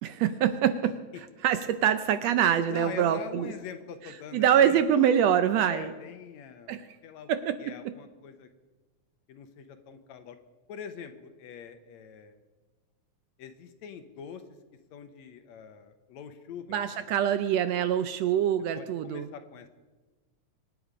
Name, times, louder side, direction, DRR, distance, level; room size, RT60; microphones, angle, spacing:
voice 1, 0.0-0.9 1.4-3.5 4.3-5.9 6.7-6.9 7.3-7.9 16.7-19.3, right 9 dB, 75° right, 11 dB, 1.6 m, -25 dB
voice 2, 2.7-4.9 5.7-7.3 7.6-8.5 9.3-10.4 10.7-12.4 13.4-14.4 14.9-16.9 18.8-19.7, left 7 dB, 70° left, 8 dB, 2.2 m, -43 dB
24.5 x 9.7 x 5.1 m, 1.2 s
omnidirectional pair, 3.4 m